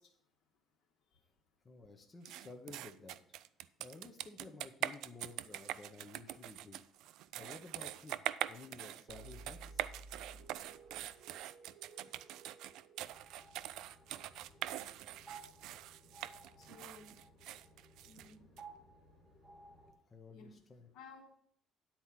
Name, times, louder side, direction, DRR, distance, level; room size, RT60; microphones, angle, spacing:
voice 1, 0.0-2.1 3.6-3.8 5.0-5.1 7.2-7.4 10.0-18.6 19.1-21.2, left 4 dB, 70° left, 4 dB, 1.6 m, -65 dB
voice 2, 1.6-3.2 3.8-6.8 7.3-9.9 20.1-20.9, left 3 dB, 20° left, 3 dB, 0.7 m, -53 dB
sound 1, 2.3-18.6, right 13 dB, 70° right, 0.3 m, -43 dB
sound 2, 9.1-13.8, right 3 dB, 50° right, 1.6 m, -56 dB
sound 3, 13.0-19.9, right 3 dB, ahead, 2.5 m, -58 dB
9.7 x 4.4 x 7.3 m, 0.67 s
cardioid pair, 170°, 0 cm